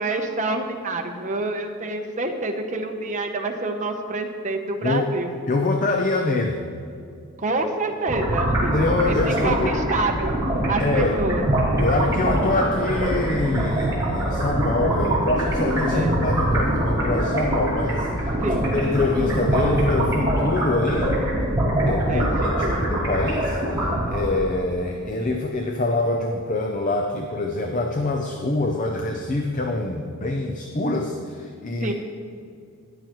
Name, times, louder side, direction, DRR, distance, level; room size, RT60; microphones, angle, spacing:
voice 1, 0.0-5.3 7.4-8.7 9.1-10.3 10.7-11.5 15.9-16.2 18.4-18.7 22.1-22.3 22.6-22.9 31.8-31.9, right 2 dB, 35° right, 3 dB, 0.8 m, -27 dB
voice 2, 5.5-6.6 8.7-9.7 10.8-11.2 11.8-18.1 18.4-21.2 21.8-31.9, left 2 dB, 35° left, 3 dB, 0.5 m, -25 dB
sound 1, 8.1-24.5, right 1 dB, 15° right, 3.0 m, -23 dB
13.5 x 11.0 x 3.1 m, 2.4 s
head